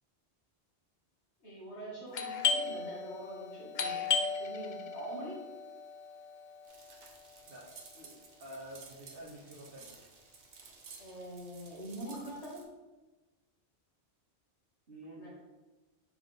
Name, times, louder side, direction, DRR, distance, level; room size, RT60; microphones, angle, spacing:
voice 1, 1.4-4.1 4.4-5.4 8.0-8.1 11.0-12.7 15.2-15.3, right 1 dB, 75° left, -5 dB, 2.3 m, -44 dB
Doorbell, 2.1-7.6, left 5 dB, 50° left, 0.6 m, -36 dB
bicycle peddle fast wheel spin clicky something in spokes, 6.7-12.6, right 5 dB, 85° right, 1.2 m, -54 dB
voice 2, 8.4-10.0 14.9-15.3, right 1 dB, 60° right, -5 dB, 1.3 m, -48 dB
6.3 x 3.7 x 5.2 m, 1.2 s
omnidirectional pair, 1.1 m